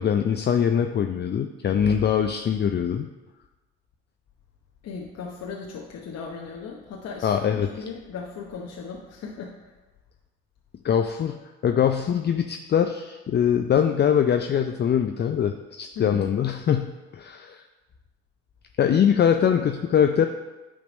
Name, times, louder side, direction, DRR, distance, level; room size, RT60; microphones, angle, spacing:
voice 1, 0.0-3.1 7.2-7.7 10.8-11.4 11.6-17.6 18.8-20.3, left 8 dB, 35° left, 6 dB, 0.5 m, -22 dB
voice 2, 4.8-9.7 15.9-16.3, left 5 dB, 55° left, -1 dB, 1.0 m, -37 dB
9.4 x 3.4 x 5.2 m, 1.1 s
hypercardioid pair, 55°, 30 cm